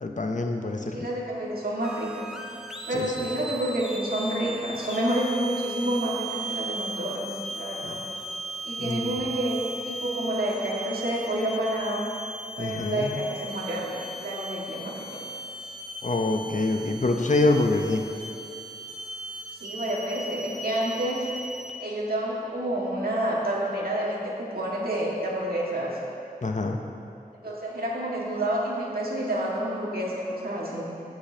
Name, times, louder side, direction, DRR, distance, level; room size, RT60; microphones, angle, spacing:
voice 1, 0.0-1.1 2.9-3.3 7.8-8.0 8.8-9.1 12.6-13.2 16.0-18.0 26.4-26.8, left 2 dB, 55° left, 3 dB, 0.7 m, -26 dB
voice 2, 0.9-2.2 2.9-8.0 8.6-12.1 12.6-15.2 19.6-21.3 21.8-26.0 27.4-30.9, right 1 dB, 75° right, -5 dB, 1.9 m, -29 dB
sound 1, 1.8-21.7, right 1 dB, 5° right, 0.8 m, -37 dB
16.5 x 6.6 x 2.8 m, 2.6 s
wide cardioid pair, 55°, 15 cm